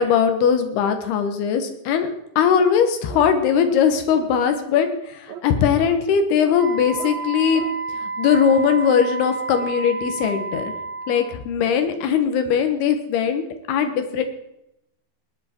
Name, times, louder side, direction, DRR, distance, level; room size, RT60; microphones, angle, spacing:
voice 1, 0.0-2.1 2.4-4.9 5.4-7.6 8.0-10.7 11.1-14.2, left 7 dB, 85° left, 7 dB, 3.3 m, -20 dB
sound 1, 2.6-2.8 3.1-3.3 3.6-3.8 4.1-4.3 4.7-4.9 5.3-5.4 5.8-6.0 6.4-6.6 7.0-7.1 7.5-7.7, right 9 dB, 70° right, 2.7 m, -37 dB
Wind instrument woodwind instrument, 6.5-11.3, right 4 dB, 25° left, 1.6 m, -30 dB
18.5 x 10.0 x 4.4 m, 0.84 s
omnidirectional pair, 4.4 m